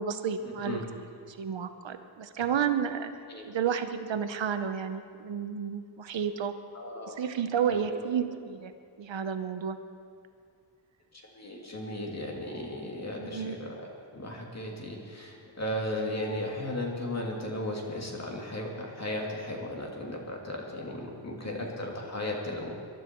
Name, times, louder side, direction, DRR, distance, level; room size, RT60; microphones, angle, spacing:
voice 1, 0.0-3.1 3.4-6.5 7.1-8.7 9.0-9.8 13.2-13.6 21.4-21.7, right 7 dB, 75° right, 9 dB, 1.0 m, -31 dB
voice 2, 6.7-7.2 7.7-8.1 11.1-22.7, left 1 dB, 35° left, -1 dB, 2.7 m, -36 dB
23.0 x 12.0 x 4.6 m, 2.3 s
wide cardioid pair, 130°, 45 cm